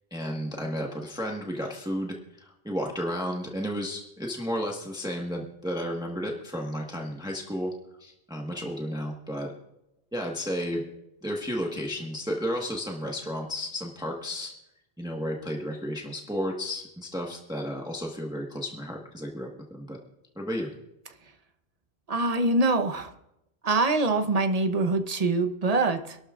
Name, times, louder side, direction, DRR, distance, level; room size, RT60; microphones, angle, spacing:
voice 1, 0.1-7.7 8.0-9.5 10.1-10.8 11.2-14.5 15.0-20.0 20.4-20.7, equal, 5° right, -1 dB, 1.3 m, -32 dB
voice 2, 22.1-23.1 23.6-26.2, right 2 dB, 40° right, 7 dB, 1.0 m, -24 dB
26.0 x 12.0 x 2.5 m, 0.85 s
omnidirectional pair, 1.1 m